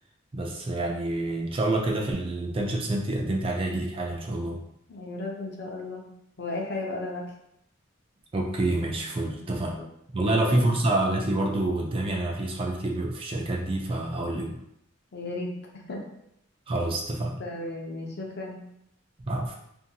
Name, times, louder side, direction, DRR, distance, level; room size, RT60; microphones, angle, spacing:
voice 1, 0.3-4.6 8.3-9.8 10.1-14.6 16.7-17.4 19.3-19.6, right 2 dB, 25° right, 0 dB, 0.3 m, -27 dB
voice 2, 4.9-6.1 6.4-7.3 9.3-9.4 9.7-9.9 10.2-10.7 15.1-16.0 17.4-18.6, left 2 dB, 50° left, -1 dB, 0.6 m, -35 dB
2.6 x 2.6 x 2.7 m, 0.78 s
head